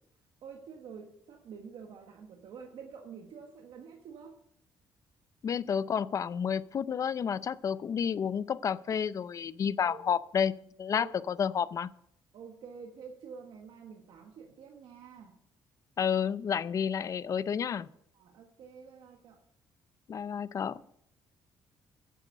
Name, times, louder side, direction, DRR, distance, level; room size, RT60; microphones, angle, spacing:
voice 1, 0.4-4.4 9.8-10.0 10.9-11.1 12.3-15.4 18.1-19.4, right 6 dB, 65° right, 2 dB, 1.4 m, -48 dB
voice 2, 5.4-10.5 10.8-11.9 16.0-17.9 20.1-20.8, left 7 dB, 40° left, 17 dB, 0.4 m, -30 dB
10.0 x 8.1 x 6.5 m, 0.72 s
cardioid pair, 140°, 9 cm